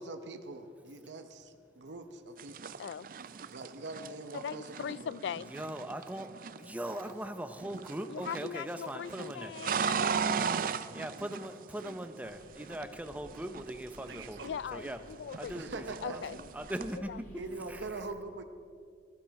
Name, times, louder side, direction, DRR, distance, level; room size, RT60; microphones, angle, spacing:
voice 1, 0.0-2.8 3.5-5.2 10.6-11.1 14.0-14.4 15.5-16.5 17.4-18.4, right 3 dB, 85° right, 7 dB, 0.8 m, -43 dB
sound 1, 2.4-7.3 7.6-8.6 8.8-12.3 12.6-15.0 15.3-17.0, right 6 dB, 50° right, 0.4 m, -37 dB
voice 2, 4.3-5.5 8.1-10.7 14.4-15.5 16.0-16.4 17.1-17.2, left 7 dB, 75° left, 21 dB, 0.3 m, -40 dB
voice 3, 5.3-6.3 6.6-9.6 10.9-15.0 15.4-16.2 16.5-17.3 17.7-17.8, right 1 dB, 10° right, 8 dB, 0.7 m, -40 dB
sound 2, 12.2-17.9, equal, 45° left, 4.6 m, -57 dB
14.5 x 13.0 x 5.8 m, 2.4 s
head